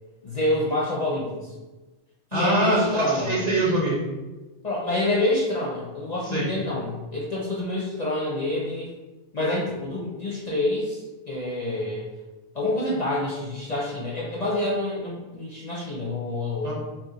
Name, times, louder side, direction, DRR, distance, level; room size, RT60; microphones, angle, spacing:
voice 1, 0.2-1.5 2.3-3.4 4.6-8.9 9.3-12.1 12.5-16.7, left 1 dB, 45° left, -5 dB, 0.5 m, -27 dB
voice 2, 2.3-4.0 6.2-6.5 16.6-16.7, right 1 dB, 45° right, -5 dB, 0.7 m, -23 dB
2.8 x 2.3 x 3.8 m, 1.1 s
omnidirectional pair, 1.2 m